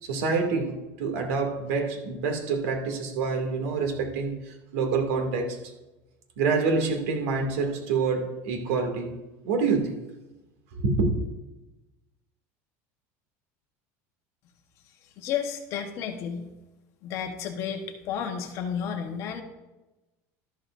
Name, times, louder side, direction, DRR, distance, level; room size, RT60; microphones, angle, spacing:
voice 1, 0.0-5.6 6.4-9.1 9.4-10.0 10.7-11.1, right 4 dB, 80° right, 3 dB, 2.2 m, -27 dB
voice 2, 15.2-16.5 17.0-19.4, left 8 dB, 40° left, 5 dB, 1.1 m, -32 dB
12.5 x 11.5 x 2.6 m, 1.0 s
cardioid pair, 175°, 8 cm